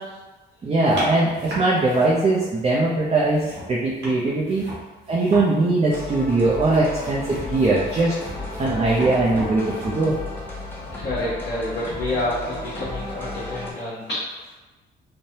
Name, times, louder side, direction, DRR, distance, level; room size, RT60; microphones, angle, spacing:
voice 1, 0.6-3.4 3.7-4.6 5.1-8.1 8.6-10.2, right 2 dB, 30° right, -5 dB, 0.5 m, -20 dB
sound 1, 0.9-2.7 3.0-10.2, equal, 70° right, 1.1 m, -36 dB
sound 2, 5.9-13.7, left 2 dB, 10° left, 0.8 m, -34 dB
voice 2, 10.9-14.5, left 1 dB, 60° left, -9 dB, 0.9 m, -28 dB
3.2 x 2.1 x 2.7 m, 1.2 s
cardioid pair, 90°, 20 cm